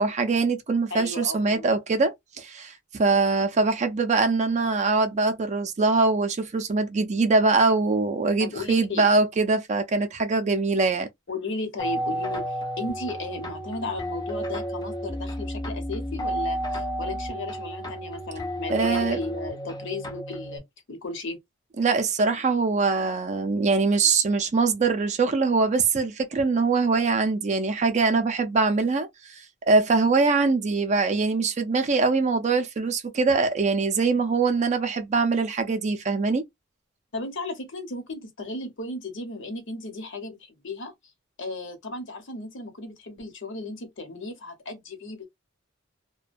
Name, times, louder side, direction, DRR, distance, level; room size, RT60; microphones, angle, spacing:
voice 1, 0.0-11.1 18.7-19.2 21.8-36.4, right 4 dB, 35° right, 0.4 m, -23 dB
voice 2, 0.9-1.8 8.4-9.0 11.3-21.4 37.1-40.9 41.4-45.3, left 2 dB, 65° left, 0.9 m, -35 dB
sound 1, 11.8-20.6, equal, 20° left, 0.5 m, -32 dB
2.3 x 2.2 x 2.5 m
head